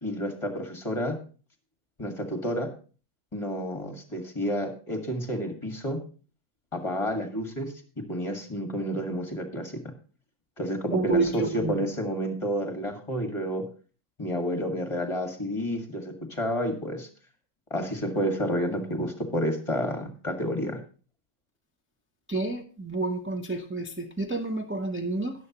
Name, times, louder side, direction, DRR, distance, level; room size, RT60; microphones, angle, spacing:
voice 1, 0.0-1.2 2.0-2.7 3.3-6.0 6.7-7.7 8.1-9.8 10.6-13.7 14.2-17.1 17.7-20.8, equal, 20° left, 4 dB, 1.8 m, -30 dB
voice 2, 10.9-11.8 22.3-25.3, right 3 dB, 15° right, 2 dB, 0.5 m, -29 dB
13.5 x 10.0 x 2.9 m, 0.37 s
omnidirectional pair, 1.6 m